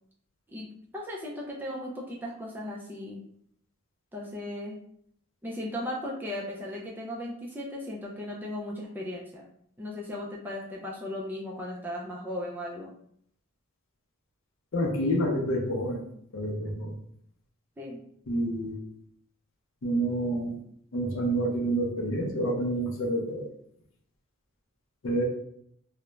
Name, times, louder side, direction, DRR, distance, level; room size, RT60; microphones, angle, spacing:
voice 1, 0.9-3.2 4.1-4.8 5.4-9.5 9.8-12.9 17.8-18.0, left 1 dB, 10° right, -3 dB, 0.3 m, -36 dB
voice 2, 14.7-16.0 16.3-16.9 18.3-18.8 19.8-20.5 20.9-23.5 25.0-25.2, right 1 dB, 60° left, 1 dB, 0.5 m, -28 dB
2.3 x 2.0 x 3.0 m, 0.68 s
head